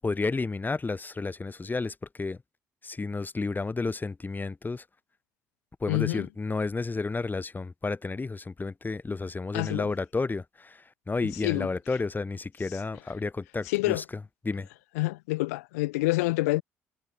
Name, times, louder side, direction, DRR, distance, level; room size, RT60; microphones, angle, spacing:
voice 1, 0.0-2.4 2.8-4.8 5.8-14.0 14.4-14.7, left 3 dB, 25° left, 1.4 m, -31 dB
voice 2, 5.9-6.3 9.5-9.9 11.4-11.7 13.7-14.0 15.0-16.6, left 21 dB, 80° left, 0.8 m, -27 dB
hypercardioid pair, 50°, 8 cm